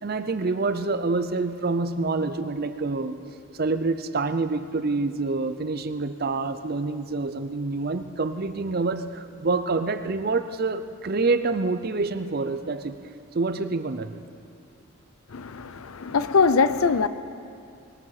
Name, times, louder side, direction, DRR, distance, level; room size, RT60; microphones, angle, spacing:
voice 1, 0.0-3.2 3.6-13.0 13.3-14.1, right 3 dB, 45° right, 11 dB, 0.6 m, -27 dB
voice 2, 15.3-17.1, left 4 dB, 80° left, 13 dB, 0.6 m, -22 dB
20.0 x 14.0 x 4.9 m, 2.5 s
head